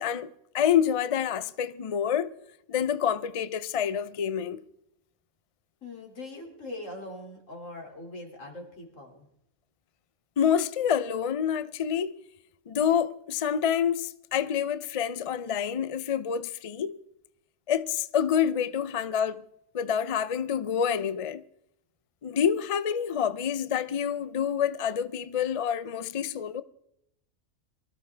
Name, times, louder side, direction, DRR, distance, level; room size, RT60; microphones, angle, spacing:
voice 1, 0.0-2.3 2.7-4.6 10.4-12.1 12.7-17.0 17.7-19.4 19.7-21.4 22.2-26.6, left 8 dB, 50° left, 0.4 m, -27 dB
voice 2, 5.8-9.3, left 2 dB, 75° left, 3.2 m, -41 dB
23.5 x 14.5 x 3.3 m
omnidirectional pair, 1.3 m